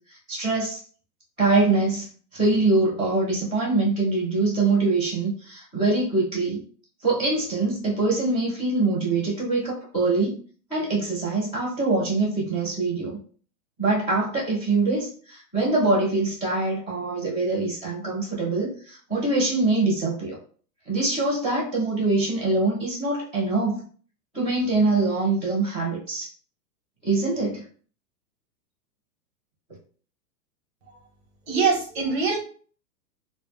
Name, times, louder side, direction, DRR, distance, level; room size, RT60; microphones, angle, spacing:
voice 1, 0.1-0.8 1.4-6.6 7.0-10.4 10.7-13.2 13.8-20.4 20.9-23.8 24.3-26.3 27.0-27.6, right 3 dB, 15° left, -14 dB, 0.5 m, -24 dB
voice 2, 31.5-32.4, right 5 dB, 40° right, 1 dB, 0.7 m, -23 dB
2.1 x 2.0 x 3.2 m, 0.42 s
hypercardioid pair, 160°, 50 cm